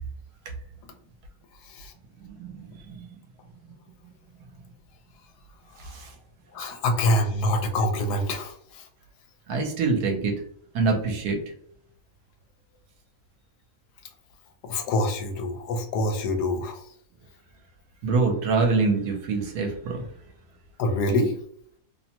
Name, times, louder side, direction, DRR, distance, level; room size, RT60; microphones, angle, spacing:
voice 1, 2.2-3.1 5.8-6.1 9.5-10.3 10.7-11.4 18.0-20.1, right 4 dB, 75° right, 3 dB, 1.1 m, -25 dB
voice 2, 6.5-8.5 14.7-16.8 20.8-21.3, left 1 dB, 80° left, 5 dB, 1.1 m, -25 dB
2.8 x 2.1 x 2.8 m, 0.65 s
omnidirectional pair, 1.7 m